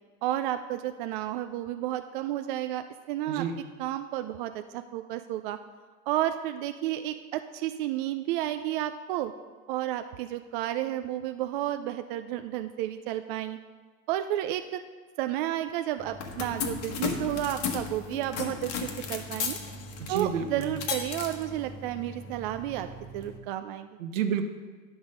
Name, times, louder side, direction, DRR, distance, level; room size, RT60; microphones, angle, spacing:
voice 1, 0.2-3.5 3.8-5.6 6.1-9.3 9.7-13.6 14.1-14.8 15.2-19.6 20.1-22.9 23.1-23.9, right 13 dB, 40° right, 8 dB, 0.4 m, -31 dB
voice 2, 3.3-3.6 20.0-20.7 24.0-24.4, right 7 dB, 65° right, 7 dB, 1.2 m, -30 dB
sound 1, 16.0-23.4, left 5 dB, 35° left, 1.2 m, -35 dB
9.8 x 6.1 x 5.3 m, 1.4 s
hypercardioid pair, 125°, 42 cm